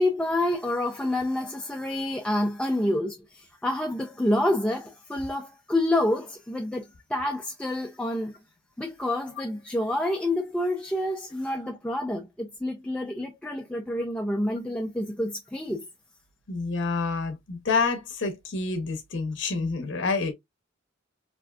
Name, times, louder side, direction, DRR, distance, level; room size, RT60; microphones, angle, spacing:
voice 1, 0.0-8.4 8.8-15.8, left 1 dB, 5° left, 0.4 m, -28 dB
voice 2, 16.5-20.3, left 4 dB, 65° left, 0.8 m, -28 dB
3.4 x 2.5 x 2.3 m
head